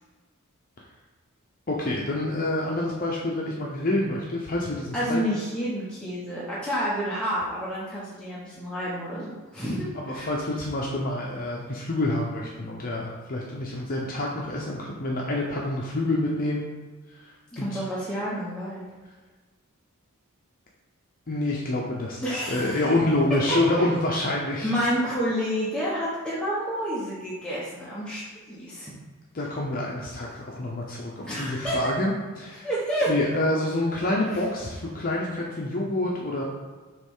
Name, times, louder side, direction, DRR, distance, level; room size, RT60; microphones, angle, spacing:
voice 1, 1.7-5.2 9.9-16.7 17.1-17.8 21.3-24.7 29.3-32.7 33.1-36.4, left 1 dB, 40° left, -3 dB, 0.8 m, -27 dB
voice 2, 4.9-10.3 17.5-18.8 22.2-22.8 23.5-23.9 24.6-28.9 31.3-31.9 32.6-33.1, equal, 5° left, -8 dB, 1.1 m, -29 dB
7.7 x 3.2 x 5.5 m, 1.3 s
head